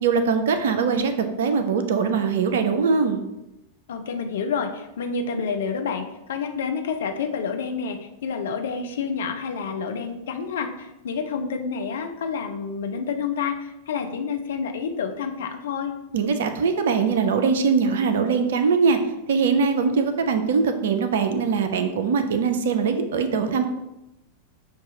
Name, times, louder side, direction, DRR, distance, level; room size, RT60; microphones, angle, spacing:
voice 1, 0.0-3.2 16.1-19.0 19.3-23.7, right 5 dB, 60° right, 8 dB, 0.4 m, -22 dB
voice 2, 3.9-15.9, left 5 dB, 60° left, 5 dB, 0.5 m, -29 dB
6.3 x 2.3 x 2.7 m, 0.93 s
figure-of-eight pair, 90°, 0 cm